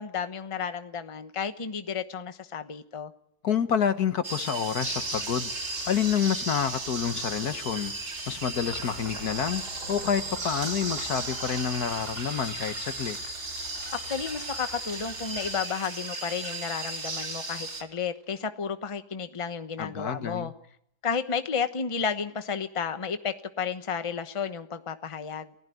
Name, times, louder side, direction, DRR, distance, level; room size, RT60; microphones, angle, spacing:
voice 1, 0.0-3.1 13.9-20.5 21.0-25.5, left 6 dB, 25° left, 9 dB, 1.0 m, -32 dB
voice 2, 3.4-5.5 5.9-7.9 8.3-9.6 9.9-13.2 19.8-20.5, left 8 dB, 75° left, 10 dB, 1.7 m, -28 dB
sound 1, 4.2-17.8, right 3 dB, 45° right, 2.4 m, -35 dB
sound 2, 4.8-15.6, left 4 dB, 40° left, 2.2 m, -50 dB
sound 3, 8.6-18.3, right 2 dB, 90° right, 6.7 m, -45 dB
29.0 x 16.0 x 9.3 m, 0.74 s
omnidirectional pair, 1.7 m